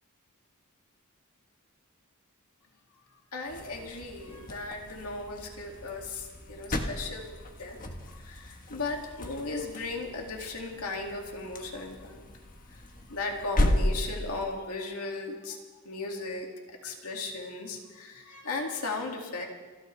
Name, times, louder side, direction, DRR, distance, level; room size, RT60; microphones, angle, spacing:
voice 1, 3.3-7.8 8.1-12.2 12.7-12.8 13.1-15.6 15.8-16.5 16.8-19.5, left 3 dB, 85° left, 1 dB, 2.3 m, -36 dB
sound 1, 3.4-14.6, left 1 dB, 40° left, 1.4 m, -35 dB
28.5 x 13.0 x 3.3 m, 1.4 s
head